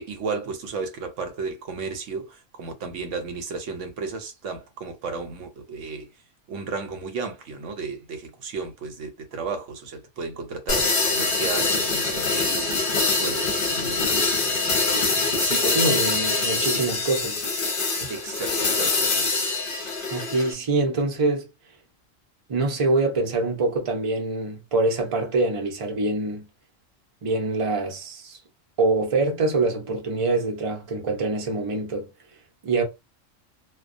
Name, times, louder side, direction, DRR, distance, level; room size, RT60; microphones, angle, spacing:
voice 1, 0.0-6.1 6.5-12.8 13.2-14.0 15.0-16.0 16.6-16.8 18.1-19.3, right 4 dB, 75° right, 0.9 m, -33 dB
sound 1, 10.7-20.5, left 3 dB, 50° left, 0.8 m, -24 dB
voice 2, 15.7-17.4 20.1-21.5 22.5-26.5 27.2-28.4 28.8-32.1 32.6-32.8, right 2 dB, 35° right, 0.6 m, -24 dB
2.2 x 2.2 x 2.5 m
omnidirectional pair, 1.3 m